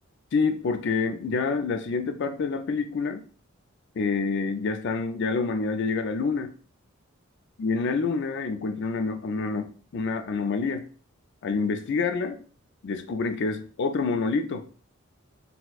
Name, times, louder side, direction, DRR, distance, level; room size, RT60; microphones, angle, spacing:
voice 1, 0.3-3.2 4.0-6.5 7.6-10.9 11.4-12.4 12.8-14.6, left 4 dB, 55° left, 8 dB, 0.4 m, -27 dB
4.2 x 2.1 x 2.3 m, 0.40 s
head